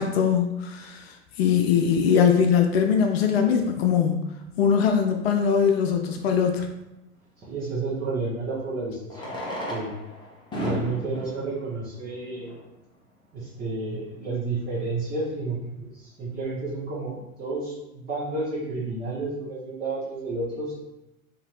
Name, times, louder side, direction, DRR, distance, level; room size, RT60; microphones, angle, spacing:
voice 1, 0.0-4.2 4.6-6.7, left 7 dB, 45° left, 4 dB, 0.5 m, -21 dB
voice 2, 7.5-9.4 9.7-9.9 10.6-12.5 13.3-20.8, right 3 dB, 20° right, -9 dB, 1.0 m, -31 dB
Fireworks, 7.9-8.0 9.0-12.8 13.5-13.6 13.8-13.9 14.1-14.2 14.8-15.0, equal, 10° left, 0.9 m, -35 dB
3.8 x 2.6 x 3.1 m, 0.92 s
figure-of-eight pair, 100°, 43 cm